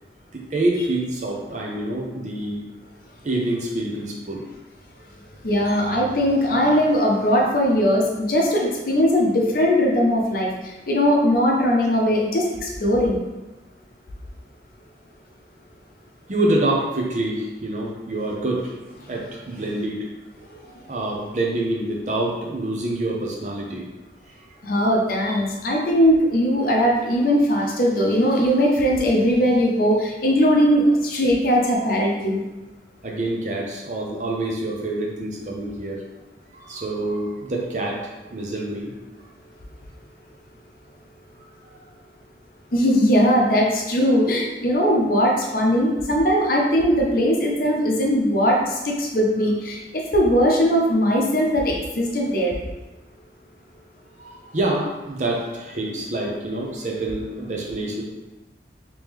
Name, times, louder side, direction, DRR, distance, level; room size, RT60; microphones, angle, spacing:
voice 1, 0.3-2.7 3.2-4.4 5.7-5.9 16.3-18.7 19.1-20.0 20.6-23.9 33.0-36.0 36.5-38.9 54.2-58.0, right 1 dB, 40° right, -1 dB, 0.7 m, -26 dB
voice 2, 5.4-13.2 24.6-32.4 42.7-52.6, equal, 50° left, -1 dB, 0.7 m, -20 dB
3.2 x 3.0 x 3.5 m, 1.1 s
head